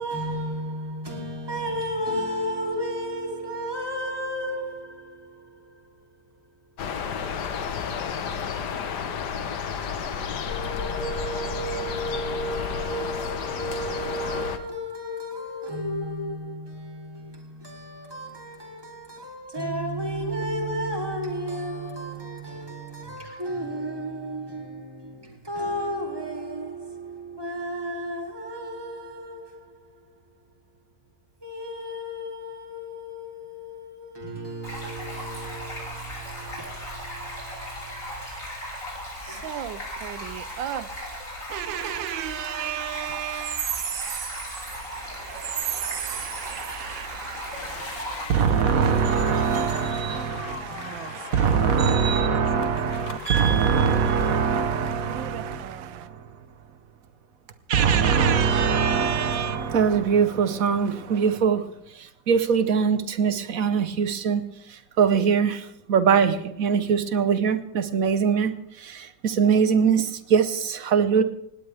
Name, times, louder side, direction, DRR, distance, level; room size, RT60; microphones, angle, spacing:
voice 1, 0.0-6.3 10.5-30.4 31.4-38.3 39.3-39.4, equal, 10° right, 3.0 m, -33 dB
sound 1, 6.8-14.6, left 6 dB, 65° left, 1.6 m, -31 dB
Stream, 34.6-48.3, equal, 40° left, 7.0 m, -37 dB
voice 2, 39.2-40.9 41.5-43.7 44.7-48.3 48.8-51.9 52.6-56.1, right 13 dB, 75° right, 1.5 m, -37 dB
voice 3, 43.7-44.3 45.7-47.1 48.3-56.2 57.7-61.7 61.9-71.2, right 6 dB, 50° right, 1.3 m, -23 dB
sound 2, 47.6-53.5, left 8 dB, 90° left, 1.9 m, -40 dB
19.5 x 17.0 x 3.4 m
omnidirectional pair, 2.1 m